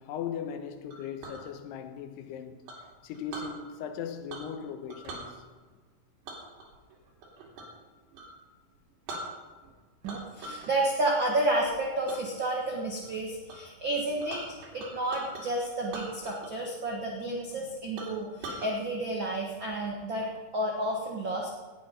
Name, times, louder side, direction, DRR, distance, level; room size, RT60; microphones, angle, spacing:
voice 1, 0.0-2.6 3.0-5.4, left 7 dB, 85° left, 3.0 m, -38 dB
Chink clink, 0.9-1.4 2.7-3.5 4.3-4.6 4.9-5.3 6.3-7.8 8.1-8.3 8.7-8.8 9.1-9.7 10.0-10.7 11.1-11.4 12.1-12.2 12.7-13.1 13.5-13.6 13.8-15.4 15.9-16.7 16.9-17.0 17.5-17.6 18.0-18.7, right 2 dB, 90° right, 4.7 m, -42 dB
voice 2, 10.0-20.3 20.5-21.5, right 1 dB, 75° right, 1.1 m, -31 dB
18.5 x 8.9 x 5.4 m
omnidirectional pair, 4.7 m